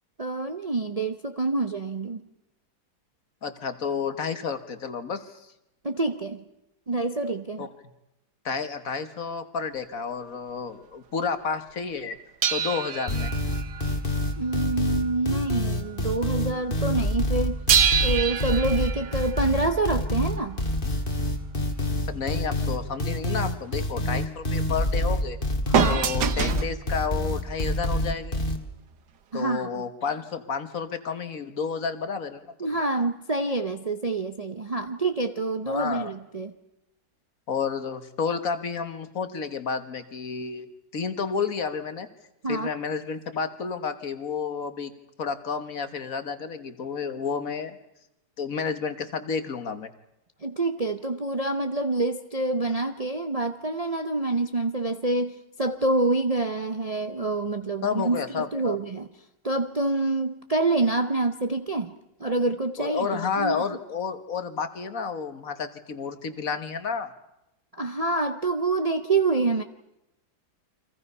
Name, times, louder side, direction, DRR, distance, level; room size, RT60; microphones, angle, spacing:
voice 1, 0.2-2.2 5.8-6.4 6.9-7.7 14.4-17.6 18.0-20.6 25.7-26.0 29.3-29.8 32.6-36.6 42.4-42.7 50.4-59.1 59.4-61.9 62.2-63.6 67.8-69.6, right 2 dB, 35° right, 7 dB, 0.7 m, -27 dB
voice 2, 3.4-5.5 7.6-7.7 8.4-12.2 12.5-13.3 22.1-25.4 25.9-28.4 29.3-32.5 35.7-36.1 37.5-42.1 42.5-44.9 45.2-47.8 48.4-49.9 57.8-58.8 62.8-67.1, left 5 dB, 55° left, 9 dB, 1.7 m, -31 dB
sound 1, 12.4-15.6 15.8-16.1 17.7-20.4 25.7-26.7 27.7-27.8, right 8 dB, 85° right, 1.7 m, -27 dB
sound 2, 13.1-28.6, left 1 dB, 30° left, 2.0 m, -27 dB
29.5 x 24.0 x 5.5 m, 0.88 s
omnidirectional pair, 1.8 m